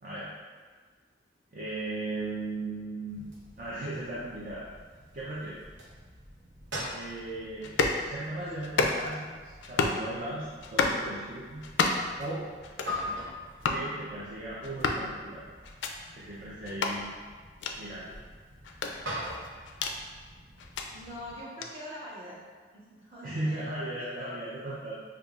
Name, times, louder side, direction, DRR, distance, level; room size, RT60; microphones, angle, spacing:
voice 1, 1.5-3.3 3.6-4.6 5.1-5.6 6.9-7.8 8.0-11.6 12.2-12.5 13.7-15.4 16.1-17.1 17.8-18.2 23.2-24.9, right 2 dB, 45° right, -8 dB, 0.5 m, -37 dB
sound 1, 3.1-21.4, left 1 dB, 80° right, 0.8 m, -44 dB
sound 2, 7.6-8.0 8.6-9.2 9.6-10.0 10.6-11.0 11.6-12.1 12.6-13.0 13.6-13.8 14.6-15.1 15.6-15.9 16.6-17.0 17.6-17.8 18.6-20.0 20.6-20.9 21.6-21.7, left 4 dB, 80° left, 0.3 m, -29 dB
voice 2, 20.9-22.4 22.7-23.7 24.2-24.3, equal, 30° right, -9 dB, 1.1 m, -44 dB
5.2 x 2.3 x 2.4 m, 1.5 s
head